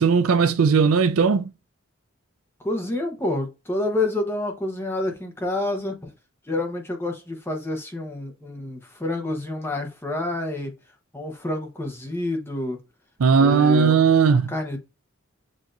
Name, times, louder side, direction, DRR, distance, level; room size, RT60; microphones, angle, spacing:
voice 1, 0.0-1.5 13.2-14.5, right 5 dB, 90° right, 0.5 m, -18 dB
voice 2, 2.6-6.1 6.5-10.7 11.1-12.8 13.4-14.1 14.5-14.8, left 2 dB, 10° left, 0.9 m, -28 dB
7.5 x 2.7 x 2.5 m
head